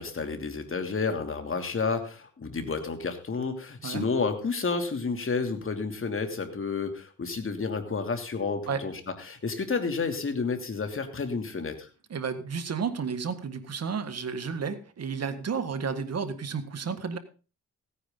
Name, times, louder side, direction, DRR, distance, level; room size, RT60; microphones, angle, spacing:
voice 1, 0.0-8.9 9.3-11.9, left 4 dB, 45° left, 6 dB, 2.8 m, -30 dB
voice 2, 12.1-17.2, right 5 dB, 55° right, 9 dB, 1.7 m, -32 dB
16.5 x 9.9 x 3.9 m, 0.34 s
cardioid pair, 75°, 31 cm